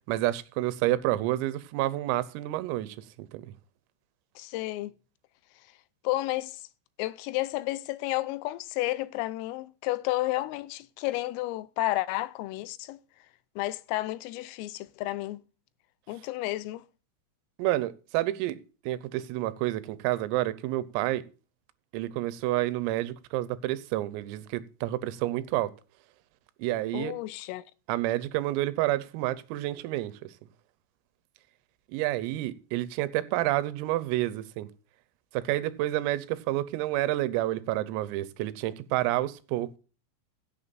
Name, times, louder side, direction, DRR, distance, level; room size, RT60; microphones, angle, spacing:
voice 1, 0.1-3.5 17.6-18.6 18.9-21.2 21.9-25.7 26.6-27.1 27.9-30.2 31.9-34.7 35.3-39.8, right 15 dB, 85° right, 3.5 m, -29 dB
voice 2, 4.4-4.9 6.0-6.6 7.0-13.0 13.6-15.4 16.1-16.8 26.9-27.6, left 18 dB, 85° left, 3.2 m, -31 dB
16.5 x 9.3 x 2.6 m
omnidirectional pair, 6.0 m